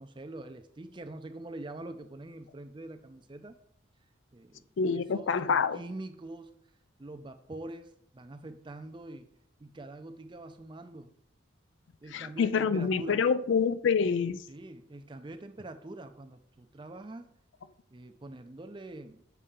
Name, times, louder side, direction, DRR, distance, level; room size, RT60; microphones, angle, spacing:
voice 1, 0.0-3.6 4.3-4.6 5.1-6.5 7.0-9.3 9.6-11.1 12.0-13.2 14.5-17.3 17.9-19.2, right 2 dB, 25° right, 0.4 m, -44 dB
voice 2, 4.8-5.8 12.1-14.4, left 6 dB, 70° left, 0.4 m, -27 dB
6.9 x 5.5 x 3.7 m
head